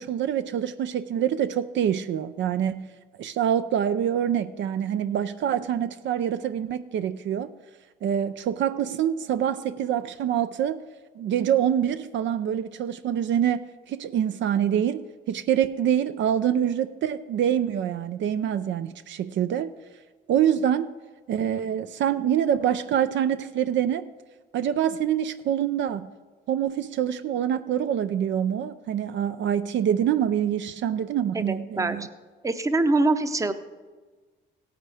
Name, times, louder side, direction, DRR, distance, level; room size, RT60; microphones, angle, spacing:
voice 1, 0.0-2.9 3.2-7.5 8.0-10.8 11.2-19.7 20.3-20.9 21.3-24.1 24.5-26.1 26.5-32.1, right 9 dB, 70° right, 11 dB, 0.5 m, -25 dB
voice 2, 31.3-32.0 32.4-33.5, right 2 dB, 15° right, 10 dB, 0.7 m, -24 dB
17.0 x 9.4 x 3.5 m, 1.4 s
cardioid pair, 90°, 20 cm